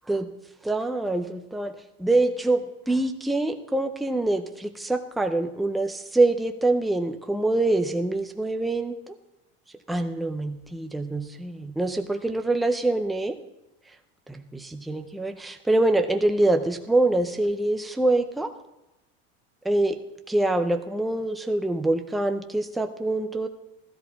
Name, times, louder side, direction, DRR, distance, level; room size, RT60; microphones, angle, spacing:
voice 1, 0.6-1.7 2.0-9.2 9.9-13.4 14.3-18.5 19.6-20.0 20.3-23.5, right 2 dB, ahead, 6 dB, 0.4 m, -25 dB
16.0 x 13.0 x 4.0 m, 0.96 s
cardioid pair, 165°, 34 cm